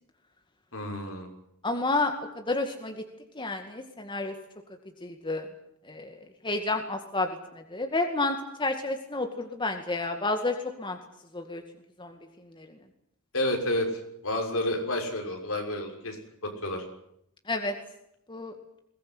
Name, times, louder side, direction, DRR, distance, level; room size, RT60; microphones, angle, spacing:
voice 1, 0.7-1.3 13.3-13.9 14.2-16.2 16.4-16.8, left 1 dB, 65° left, 3 dB, 6.5 m, -30 dB
voice 2, 1.6-3.1 3.4-4.3 5.0-5.5 5.9-6.2 6.4-7.3 7.5-11.0 11.3-11.6 12.0-12.2 12.6-12.7 17.5-17.7 18.3-18.5, left 2 dB, 20° left, 5 dB, 2.2 m, -30 dB
22.5 x 19.0 x 9.6 m, 0.76 s
head